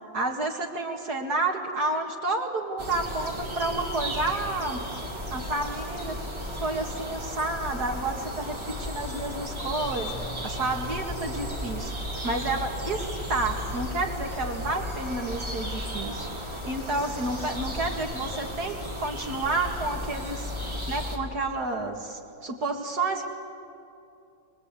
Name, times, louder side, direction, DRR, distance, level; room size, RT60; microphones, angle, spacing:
voice 1, 0.1-4.9 5.3-6.2 6.5-10.1 10.4-11.9 12.2-16.3 16.7-20.5 20.9-23.2, right 2 dB, 55° right, 2 dB, 2.5 m, -30 dB
sound 1, 2.8-21.2, left 1 dB, 15° right, 2.6 m, -34 dB
sound 2, 9.8-15.1, right 1 dB, 20° left, 2.9 m, -44 dB
24.5 x 22.5 x 8.3 m, 2.6 s
omnidirectional pair, 2.0 m